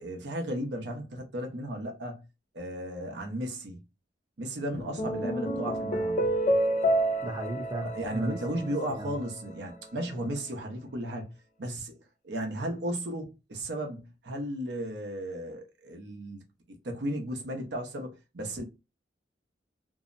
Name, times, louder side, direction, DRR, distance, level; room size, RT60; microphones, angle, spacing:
voice 1, 0.0-2.2 2.5-3.8 4.4-6.3 7.8-11.3 11.6-11.9 12.2-18.6, right 1 dB, 70° right, 0.7 m, -35 dB
sound 1, 4.7-9.3, right 1 dB, 45° left, 0.4 m, -29 dB
voice 2, 7.2-8.4 8.6-9.2, right 1 dB, 25° right, 0.7 m, -36 dB
2.7 x 2.0 x 2.5 m
head